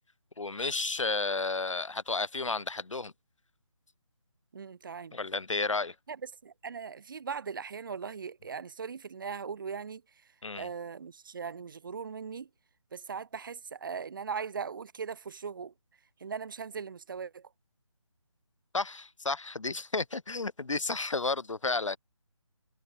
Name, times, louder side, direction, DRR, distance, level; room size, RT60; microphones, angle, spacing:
voice 1, 0.4-3.1 5.1-5.9 10.4-10.7 18.7-22.0, left 3 dB, 75° left, 4.2 m, -32 dB
voice 2, 4.5-5.2 6.1-10.0 10.6-12.5 12.9-15.7 16.2-17.5, right 6 dB, 40° right, 7.2 m, -39 dB
figure-of-eight pair, 165°, 16 cm